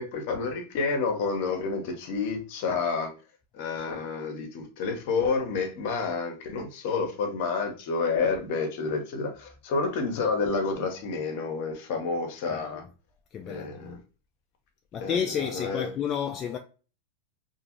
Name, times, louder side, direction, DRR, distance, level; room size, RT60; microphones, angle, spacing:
voice 1, 0.0-3.1 3.5-12.8 13.4-14.0 15.0-15.9, left 4 dB, 55° left, 0.9 m, -29 dB
voice 2, 13.3-14.0 14.9-16.6, left 8 dB, 35° left, 0.3 m, -31 dB
2.5 x 2.3 x 2.9 m
hypercardioid pair, 105°, 0 cm